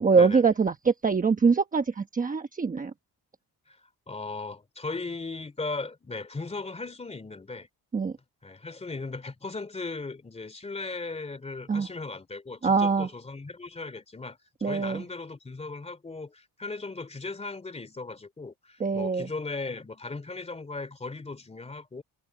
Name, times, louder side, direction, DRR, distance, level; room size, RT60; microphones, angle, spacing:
voice 1, 0.0-2.9 7.9-8.2 11.7-11.9 12.6-13.1 14.6-15.0 18.8-19.3, right 5 dB, 20° right, 1.1 m, -23 dB
voice 2, 4.1-7.7 8.4-22.0, left 3 dB, 15° left, 2.9 m, -37 dB
cardioid pair, 170°, 40 cm